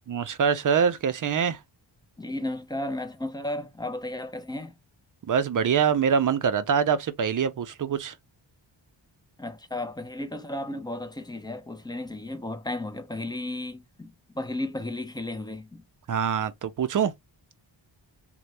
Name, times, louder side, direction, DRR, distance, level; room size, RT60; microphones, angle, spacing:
voice 1, 0.1-1.6 5.3-8.1 16.1-17.1, right 7 dB, 45° right, 0.5 m, -24 dB
voice 2, 2.2-4.7 9.4-15.8, left 1 dB, 10° left, 0.5 m, -34 dB
3.2 x 2.2 x 2.5 m
wide cardioid pair, 85°, 46 cm